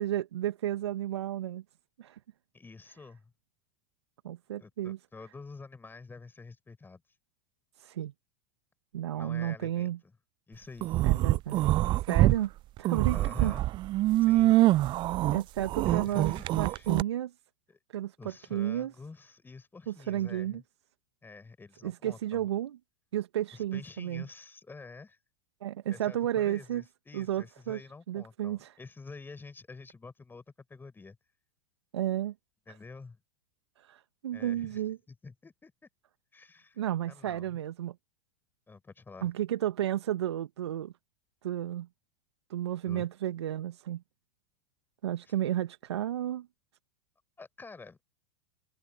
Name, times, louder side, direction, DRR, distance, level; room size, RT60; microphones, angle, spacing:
voice 1, 0.0-1.6 2.0-2.2 4.2-5.0 7.8-8.1 8.9-10.0 11.0-12.5 12.8-13.5 15.3-17.3 17.9-18.9 19.9-20.6 21.8-22.8 23.1-24.2 25.6-26.8 27.1-27.8 28.1-28.7 31.9-32.3 33.8-35.0 36.8-37.9 39.2-40.9 41.4-41.9 42.5-44.0 45.0-46.5, right 12 dB, 75° right, 1.5 m, -32 dB
voice 2, 2.5-3.2 4.6-7.0 9.1-10.1 10.5-11.0 13.1-13.7 14.2-14.6 15.8-16.9 17.7-17.8 18.2-20.6 21.2-22.4 23.5-25.2 25.9-30.4 30.7-31.2 32.7-33.2 34.3-35.7 36.3-37.6 38.7-39.3 42.9-43.1 47.4-48.0, left 4 dB, 15° left, 5.4 m, -48 dB
sound 1, 10.8-12.4 12.8-17.0, right 16 dB, 35° right, 0.4 m, -25 dB
hypercardioid pair, 95°, 14 cm